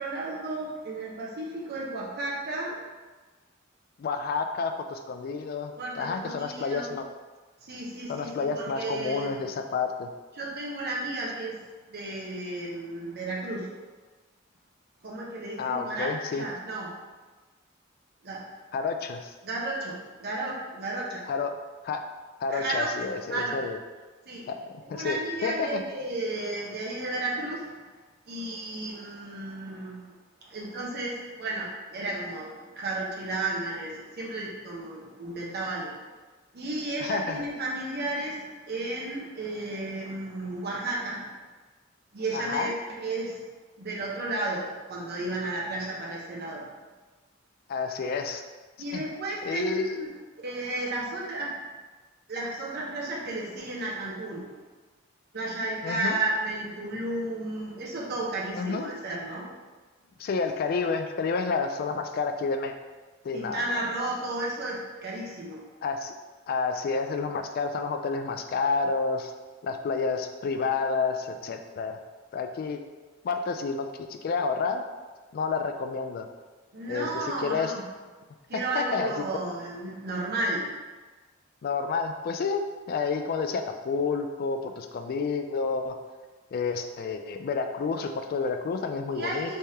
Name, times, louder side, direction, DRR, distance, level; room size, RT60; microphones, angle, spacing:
voice 1, 0.0-2.8 5.8-6.9 7.6-9.4 10.4-11.5 11.9-13.7 15.0-17.0 18.2-18.4 19.4-21.3 22.5-23.6 24.3-24.5 24.9-27.8 28.3-30.2 30.4-36.0 36.5-41.4 42.1-42.7 43.0-43.4 43.8-46.7 48.8-50.1 50.4-51.6 52.3-54.5 55.3-59.5 63.3-65.6 76.7-77.8 78.5-80.7 89.1-89.6, right 2 dB, 55° right, -4 dB, 0.8 m, -33 dB
voice 2, 4.0-7.0 8.1-10.1 15.6-16.4 18.7-19.3 21.3-21.5 21.8-22.0 22.4-23.8 24.5-24.6 24.9-25.8 37.0-37.4 42.3-42.7 47.7-48.4 48.9-49.0 49.4-50.0 55.8-56.2 58.5-58.9 60.2-62.7 63.2-63.8 65.8-66.1 66.5-69.3 69.6-72.0 72.3-72.8 73.2-74.8 75.3-76.3 76.9-77.7 78.5-79.1 81.6-86.0 86.5-89.6, left 4 dB, 50° left, 6 dB, 0.3 m, -30 dB
3.4 x 3.3 x 2.8 m, 1.3 s
head